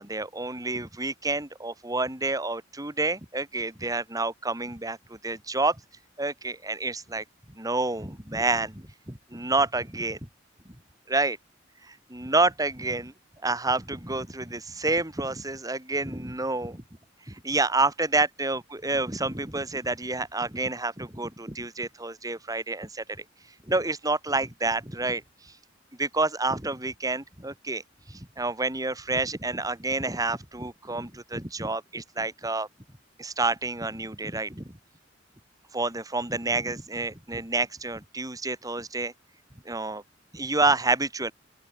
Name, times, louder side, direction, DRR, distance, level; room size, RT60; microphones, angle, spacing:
voice 1, 0.0-5.8 6.2-10.2 11.1-11.4 11.9-13.1 13.4-16.8 17.3-23.0 23.7-25.5 26.0-27.8 28.1-32.7 33.2-34.7 35.7-39.1 39.7-40.0 40.3-41.3, right 3 dB, 20° right, 3.6 m, -29 dB
open air
head